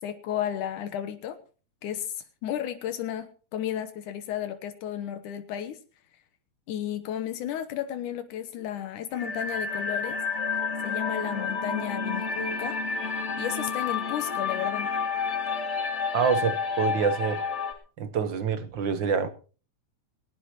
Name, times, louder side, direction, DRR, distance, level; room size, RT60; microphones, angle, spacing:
voice 1, 0.0-1.4 1.8-5.8 6.7-10.2 10.8-12.8 13.4-14.9, left 10 dB, 85° left, 2.6 m, -33 dB
sound 1, 9.1-17.7, left 5 dB, 25° left, 2.2 m, -30 dB
voice 2, 16.1-17.4 18.0-19.3, right 6 dB, 60° right, 1.3 m, -26 dB
20.0 x 18.5 x 3.0 m
omnidirectional pair, 3.5 m